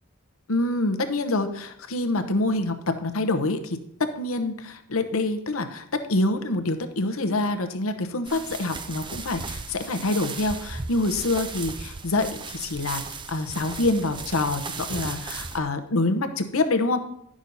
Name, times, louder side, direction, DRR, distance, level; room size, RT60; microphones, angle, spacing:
voice 1, 0.5-2.7 3.0-3.8 4.2-13.0 13.3-17.0, left 2 dB, 70° left, 7 dB, 0.9 m, -26 dB
sound 1, 8.3-15.6, right 4 dB, 20° right, 0.5 m, -36 dB
11.0 x 6.2 x 4.0 m, 0.77 s
head